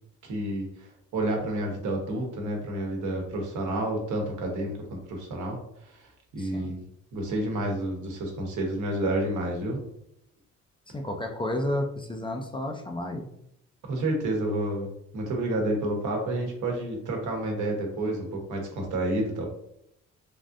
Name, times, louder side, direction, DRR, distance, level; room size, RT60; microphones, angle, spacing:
voice 1, 0.2-5.6 6.0-6.1 6.3-6.8 7.1-9.8 13.9-14.9 15.1-19.5, right 1 dB, 80° right, 1 dB, 1.0 m, -29 dB
voice 2, 6.4-6.7 10.9-13.3, left 1 dB, 15° left, 3 dB, 0.4 m, -31 dB
3.4 x 2.5 x 2.5 m, 0.75 s
cardioid pair, 90°, 30 cm